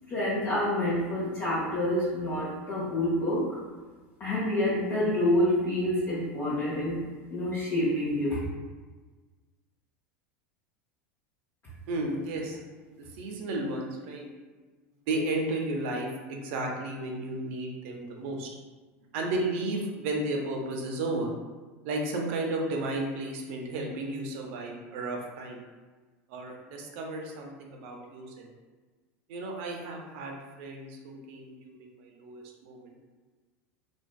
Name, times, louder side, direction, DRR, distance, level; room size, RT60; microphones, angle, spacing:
voice 1, 0.1-3.6 4.2-7.0 7.3-8.4, left 1 dB, 40° left, -8 dB, 0.7 m, -27 dB
voice 2, 11.9-12.6 12.9-14.3 15.1-18.5 19.1-21.3 21.8-25.6 26.3-28.5 29.3-33.0, right 2 dB, 70° right, 1 dB, 0.5 m, -33 dB
2.5 x 2.3 x 2.2 m, 1.3 s
hypercardioid pair, 105°, 7 cm